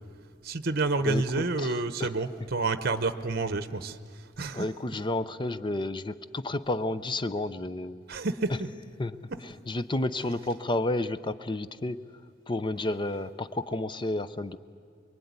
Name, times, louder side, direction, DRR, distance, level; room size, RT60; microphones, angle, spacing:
voice 1, 0.4-4.7 8.1-8.7, right 3 dB, 55° right, 11 dB, 0.9 m, -29 dB
voice 2, 1.6-2.1 4.5-8.0 9.0-9.2 9.4-12.0 12.5-14.6, left 2 dB, 25° left, 12 dB, 0.6 m, -31 dB
24.0 x 23.0 x 9.6 m, 2.2 s
head